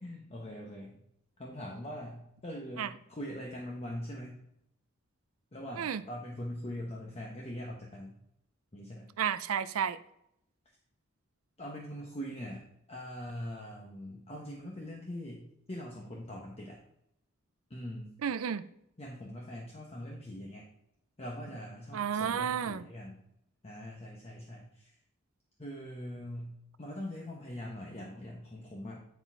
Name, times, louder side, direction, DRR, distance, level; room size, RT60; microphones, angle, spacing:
voice 1, 0.0-1.0 1.4-4.4 5.5-8.1 8.7-9.1 11.6-12.6 12.9-16.8 17.7-18.1 19.0-20.7 21.2-23.2 23.6-24.9 25.6-29.0, equal, 30° left, -1 dB, 1.0 m, -42 dB
voice 2, 9.2-10.0 18.2-18.6 21.9-22.9, right 8 dB, 85° right, 14 dB, 0.4 m, -32 dB
9.7 x 4.2 x 4.5 m, 0.78 s
head